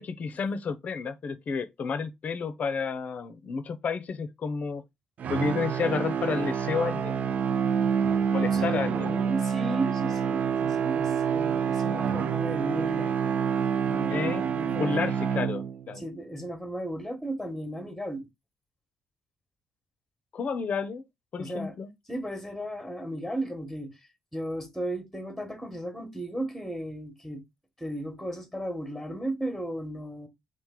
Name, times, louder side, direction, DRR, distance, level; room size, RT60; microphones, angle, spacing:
voice 1, 0.0-4.8 5.3-7.2 8.3-9.1 14.1-16.0 20.3-21.0 21.3-21.9, left 5 dB, 50° left, 0.6 m, -31 dB
sound 1, 5.2-16.0, right 7 dB, 55° right, 0.4 m, -27 dB
voice 2, 8.5-13.2 13.9-15.1 15.9-18.3 21.4-21.8 22.1-24.0 24.3-27.4 27.8-30.3, right 1 dB, ahead, 1.1 m, -35 dB
3.3 x 2.5 x 3.7 m
hypercardioid pair, 50°, 3 cm